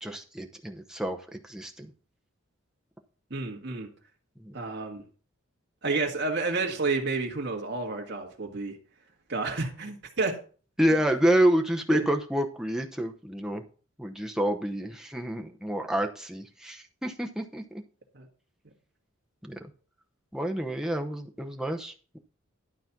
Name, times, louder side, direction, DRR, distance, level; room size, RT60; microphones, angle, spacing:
voice 1, 0.0-1.9 4.4-4.5 10.8-13.6 14.0-17.8 19.4-19.7 20.3-22.2, right 1 dB, 5° right, 0.8 m, -28 dB
voice 2, 3.3-3.9 4.5-5.0 5.8-8.8 9.3-10.4 11.9-12.0 18.1-18.3, right 3 dB, 55° right, 1.9 m, -30 dB
12.0 x 4.2 x 6.0 m
head